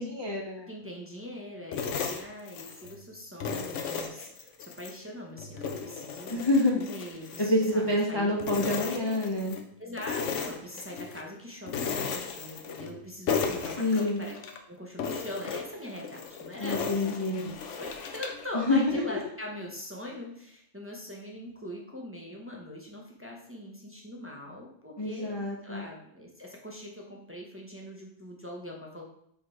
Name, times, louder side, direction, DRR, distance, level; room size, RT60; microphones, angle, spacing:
voice 1, 0.0-0.7 6.3-6.8 7.4-9.6 13.8-14.2 16.6-17.5 18.5-19.2 25.0-25.8, left 2 dB, 30° left, -2 dB, 0.4 m, -27 dB
voice 2, 0.7-6.4 6.8-8.3 8.7-9.3 9.8-14.3 14.7-17.0 17.3-29.0, left 1 dB, 10° right, -1 dB, 0.7 m, -42 dB
sound 1, 1.7-3.0 3.4-5.0 5.4-8.1 8.4-9.6 10.0-11.2 11.7-13.0 13.3-14.6 15.0-18.5, left 6 dB, 60° left, 0.9 m, -35 dB
5.2 x 3.9 x 4.8 m, 0.71 s
omnidirectional pair, 1.5 m